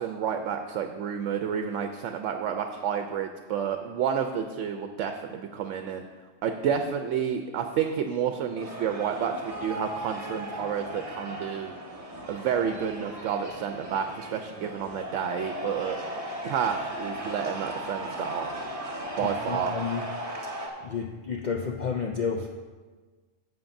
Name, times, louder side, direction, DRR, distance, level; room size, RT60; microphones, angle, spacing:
voice 1, 0.0-6.0 6.4-11.7 12.3-16.0 16.4-18.5 19.2-19.8, right 8 dB, 75° right, 6 dB, 0.9 m, -30 dB
sound 1, 8.6-20.7, right 1 dB, 25° right, 1.4 m, -37 dB
voice 2, 19.2-20.0 20.4-20.5 20.8-22.5, left 6 dB, 65° left, 2 dB, 0.4 m, -31 dB
13.0 x 7.7 x 2.6 m, 1.4 s
omnidirectional pair, 1.3 m